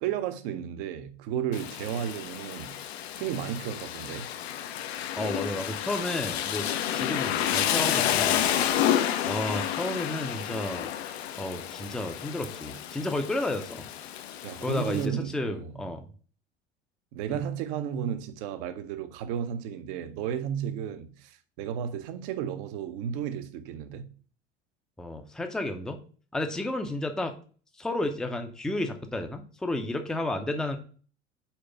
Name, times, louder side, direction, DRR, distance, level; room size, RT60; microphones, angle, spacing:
voice 1, 0.0-2.8 3.1-4.3 14.4-15.8 17.1-24.1, right 9 dB, 50° right, 0.9 m, -33 dB
Rain, 1.5-15.1, left 10 dB, 60° left, 0.7 m, -30 dB
voice 2, 5.2-6.7 6.9-8.4 9.2-10.9 11.4-13.9 14.6-16.0 17.3-17.4 25.0-26.0 26.3-27.4 27.8-30.8, left 1 dB, ahead, 0.6 m, -32 dB
4.5 x 4.5 x 5.8 m
figure-of-eight pair, 75°, 35 cm